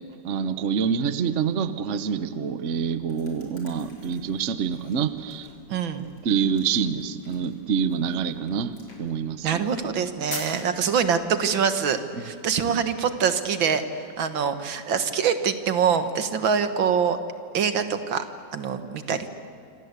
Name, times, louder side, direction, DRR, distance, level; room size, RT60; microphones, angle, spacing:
voice 1, 0.2-5.5 6.2-9.6, right 6 dB, 45° right, 12 dB, 1.2 m, -26 dB
sound 1, 2.7-11.1, left 2 dB, 90° left, 5.3 m, -46 dB
voice 2, 5.7-6.1 9.4-13.8 14.2-17.2 17.5-18.2 18.5-19.3, right 7 dB, 85° right, 9 dB, 2.2 m, -24 dB
27.0 x 26.5 x 8.2 m, 2.5 s
omnidirectional pair, 2.1 m